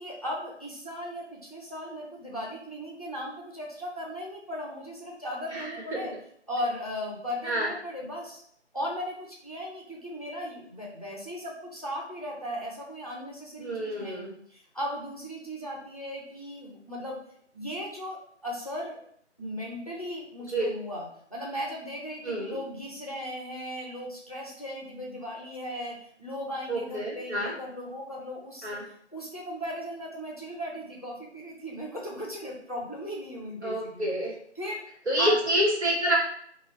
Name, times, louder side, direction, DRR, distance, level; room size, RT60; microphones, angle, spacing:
voice 1, 0.0-6.1 6.5-8.4 8.7-17.2 17.5-19.0 19.4-28.8 29.1-34.1 34.6-34.8 35.2-35.3, equal, 35° left, -3 dB, 0.5 m, -37 dB
voice 2, 5.5-6.0 7.4-7.7 13.6-14.3 20.5-20.7 22.2-22.6 26.7-27.5 28.6-28.8 33.6-34.3 35.1-36.2, right 1 dB, 65° right, -3 dB, 1.4 m, -28 dB
2.8 x 2.3 x 3.1 m, 0.65 s
figure-of-eight pair, 165°, 36 cm